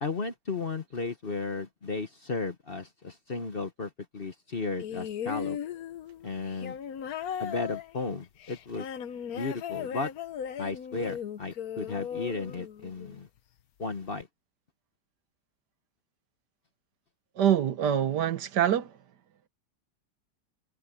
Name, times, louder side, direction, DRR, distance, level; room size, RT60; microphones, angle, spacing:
voice 1, 0.0-5.6 6.2-6.8 7.4-8.9 9.3-10.1 10.6-13.3 13.8-14.3, left 3 dB, 40° left, 1.1 m, -34 dB
sound 1, 4.8-13.2 14.2-14.3, left 8 dB, 60° left, 1.2 m, -37 dB
voice 2, 17.4-18.9, right 10 dB, 70° right, 1.6 m, -25 dB
omnidirectional pair, 1.9 m